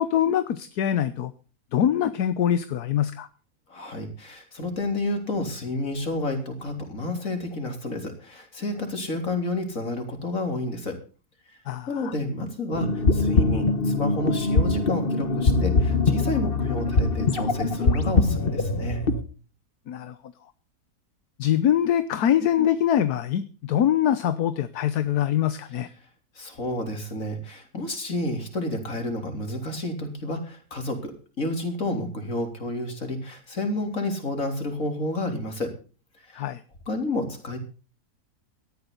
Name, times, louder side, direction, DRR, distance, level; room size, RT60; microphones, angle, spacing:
voice 1, 0.0-1.3 1.7-3.3 11.7-12.1 19.9-20.2 21.4-25.9 36.3-36.6, left 10 dB, 75° left, 13 dB, 1.4 m, -23 dB
voice 2, 3.7-11.0 11.9-19.0 26.4-31.1 31.4-35.7 36.2-36.4 36.9-37.6, left 2 dB, 55° left, 5 dB, 4.0 m, -30 dB
sound 1, 12.7-19.2, left 3 dB, 40° left, 1.4 m, -23 dB
18.0 x 13.5 x 4.0 m, 0.36 s
omnidirectional pair, 1.7 m